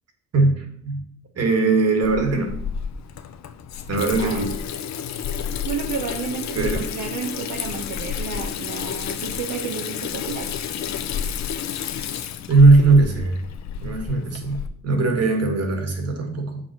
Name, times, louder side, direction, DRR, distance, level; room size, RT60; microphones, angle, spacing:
voice 1, 0.3-1.0 1.3-2.5 3.9-4.5 6.5-6.9 12.5-13.4 13.8-16.6, right 3 dB, 55° right, 4 dB, 2.3 m, -19 dB
Water tap faucet / Sink (filling or washing), 2.0-14.7, left 8 dB, 65° left, 0.9 m, -30 dB
voice 2, 4.2-4.5 5.6-10.5, right 6 dB, 70° right, 0 dB, 1.4 m, -31 dB
7.3 x 6.2 x 6.3 m, 0.66 s
cardioid pair, 90°, 30 cm